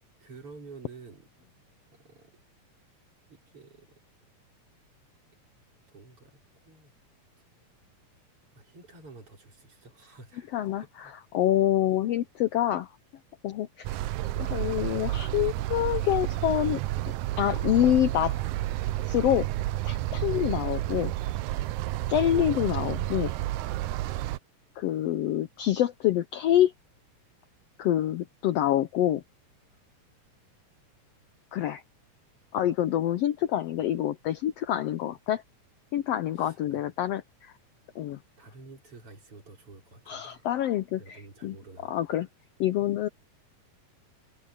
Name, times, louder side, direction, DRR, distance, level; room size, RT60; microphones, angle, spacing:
voice 1, 0.2-1.3 1.9-2.3 3.3-4.0 5.9-6.9 8.5-10.5 10.8-11.1 36.3-36.9 38.4-40.5 41.0-42.2, right 3 dB, 40° right, 5.2 m, -50 dB
voice 2, 10.5-12.9 13.4-14.0 14.4-16.8 17.4-18.4 19.1-19.5 19.8-21.1 22.1-23.3 24.8-26.7 27.8-29.2 31.5-31.8 32.5-35.4 35.9-37.5 37.9-38.2 40.1-41.6 41.9-42.3 42.6-43.1, left 12 dB, 85° left, 1.4 m, -26 dB
sound 1, 13.8-24.4, right 16 dB, 75° right, 1.9 m, -30 dB
omnidirectional pair, 3.8 m